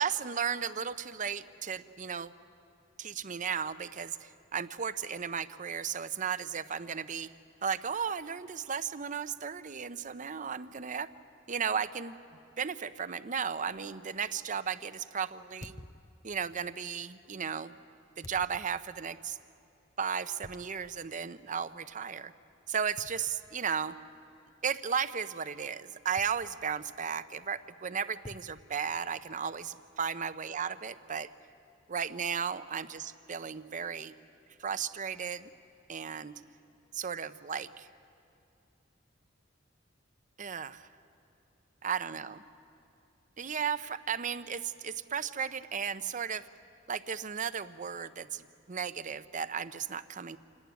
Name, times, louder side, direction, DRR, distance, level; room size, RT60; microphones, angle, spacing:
voice 1, 0.0-2.3 3.0-7.3 7.6-11.1 11.5-12.1 12.6-15.7 16.2-17.7 18.2-19.4 20.0-22.3 22.7-23.9 24.6-31.3 31.9-34.1 34.6-35.5 35.9-36.3 36.9-37.9 40.4-40.9 41.8-42.3 43.4-46.5 46.9-50.4, right 7 dB, 40° right, 13 dB, 0.7 m, -35 dB
sound 1, 13.7-13.9 15.6-16.6 18.2-19.1 20.4-21.1 21.5-21.6 23.0-23.9 26.2-26.9 28.2-29.4, left 1 dB, 20° left, 0.5 m, -52 dB
27.0 x 18.0 x 9.4 m, 2.6 s
head